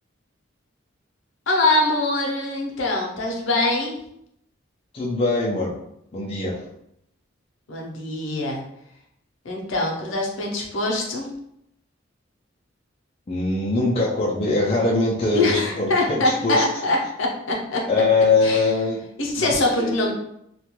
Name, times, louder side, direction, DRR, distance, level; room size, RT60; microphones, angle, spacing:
voice 1, 1.5-4.0 7.7-8.6 9.4-11.3 15.3-17.8 18.4-18.6 19.2-20.1, left 2 dB, 70° left, 0 dB, 0.6 m, -23 dB
voice 2, 4.9-5.7 6.1-6.5 13.3-16.6 17.9-19.0 19.4-20.1, left 3 dB, 30° left, -4 dB, 0.3 m, -22 dB
2.4 x 2.2 x 2.9 m, 0.76 s
head